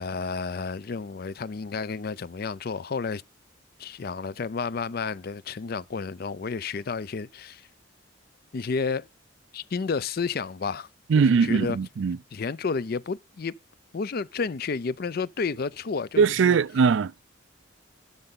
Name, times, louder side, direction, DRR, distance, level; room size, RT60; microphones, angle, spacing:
voice 1, 0.0-3.2 3.8-7.7 8.5-9.1 9.5-10.9 11.4-11.8 12.3-13.5 13.9-16.6, left 5 dB, 50° left, 0.4 m, -31 dB
voice 2, 11.1-12.2 16.2-17.2, right 5 dB, 65° right, 0.4 m, -21 dB
12.0 x 5.3 x 3.7 m
head